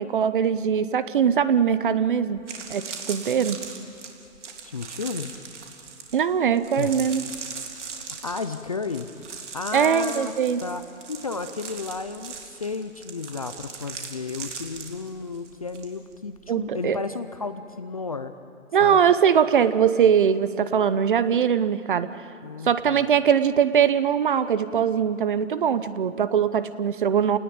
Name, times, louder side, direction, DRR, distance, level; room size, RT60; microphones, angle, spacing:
voice 1, 0.0-2.4 2.7-2.8 3.1-3.6 6.1-7.2 9.7-10.6 16.5-17.0 18.7-22.2 22.6-27.4, right 8 dB, 40° right, 14 dB, 0.8 m, -21 dB
sound 1, 1.9-2.0 2.3-15.9 16.1-16.5, right 5 dB, 55° right, 3.6 m, -39 dB
voice 2, 4.6-5.3 6.8-7.0 8.1-9.1 9.5-10.3 10.6-18.3 18.8-19.0 22.4-23.0, left 4 dB, 25° left, 10 dB, 0.5 m, -33 dB
29.0 x 19.0 x 8.6 m, 2.8 s
hypercardioid pair, 155°, 42 cm